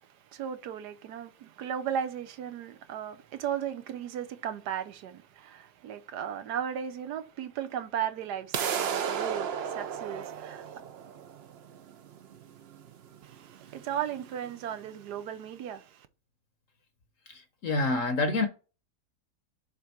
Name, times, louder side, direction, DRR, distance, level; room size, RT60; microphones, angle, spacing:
voice 1, 0.0-10.8 13.2-16.1, right 9 dB, 80° right, 1.3 m, -36 dB
sound 1, 8.5-14.5, right 8 dB, 60° right, 0.6 m, -35 dB
voice 2, 17.3-18.5, left 3 dB, 60° left, 1.1 m, -27 dB
6.9 x 3.7 x 4.3 m
omnidirectional pair, 1.7 m